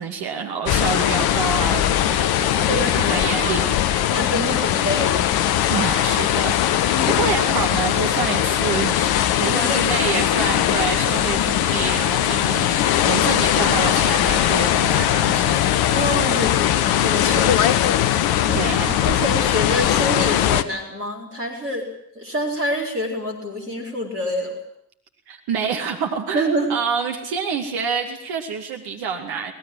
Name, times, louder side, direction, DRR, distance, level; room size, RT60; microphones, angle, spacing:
voice 1, 0.0-3.9 5.7-15.6 18.5-19.0 25.3-29.5, right 6 dB, 50° right, 4 dB, 2.4 m, -27 dB
sound 1, 0.7-20.6, left 11 dB, 55° left, 1.2 m, -20 dB
voice 2, 2.7-3.6 4.1-5.3 6.9-7.3 9.4-10.0 15.9-17.8 18.5-18.7 19.0-21.8 22.1-24.6 26.3-26.7, equal, 85° right, 0 dB, 4.0 m, -26 dB
24.5 x 19.5 x 7.6 m, 0.71 s
figure-of-eight pair, 50°, 46 cm